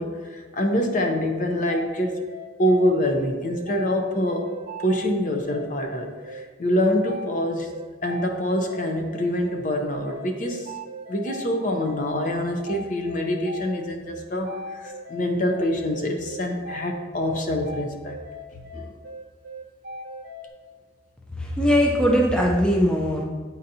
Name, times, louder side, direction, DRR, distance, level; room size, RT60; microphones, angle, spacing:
voice 1, 0.0-2.2 2.6-4.5 4.8-7.7 8.0-10.7 11.1-18.2 18.7-18.9, left 1 dB, 40° left, 3 dB, 0.6 m, -25 dB
sound 1, 1.7-20.5, equal, 55° right, 0.5 m, -39 dB
voice 2, 21.4-23.2, equal, 5° left, -1 dB, 0.4 m, -20 dB
8.7 x 4.0 x 2.7 m, 1.5 s
head